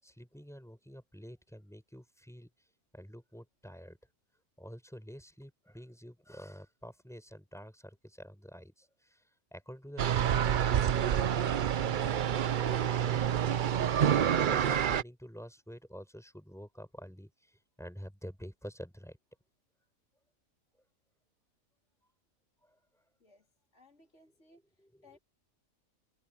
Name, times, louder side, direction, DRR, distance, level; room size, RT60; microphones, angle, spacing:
voice 1, 0.0-2.5 2.9-4.0 4.6-9.2 9.5-17.5 17.8-19.2 24.8-25.2, equal, ahead, 7.6 m, -48 dB
sound 1, 10.0-15.0, right 9 dB, 55° right, 0.6 m, -28 dB
voice 2, 23.7-25.2, left 2 dB, 60° left, 3.8 m, -62 dB
omnidirectional pair, 1.4 m